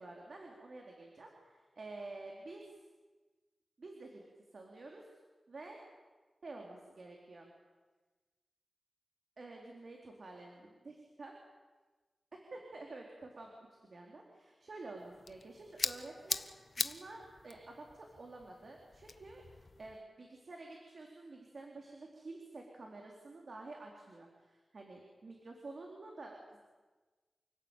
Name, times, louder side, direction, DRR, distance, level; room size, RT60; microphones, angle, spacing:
voice 1, 0.0-2.8 3.8-4.3 4.5-5.1 5.5-5.8 6.4-7.5 9.4-11.3 12.3-13.5 13.8-26.6, right 2 dB, 60° right, 1 dB, 4.1 m, -50 dB
sound 1, 15.0-20.0, left 3 dB, 50° left, 1.1 m, -42 dB
29.0 x 17.0 x 9.2 m, 1.3 s
wide cardioid pair, 85°, 0 cm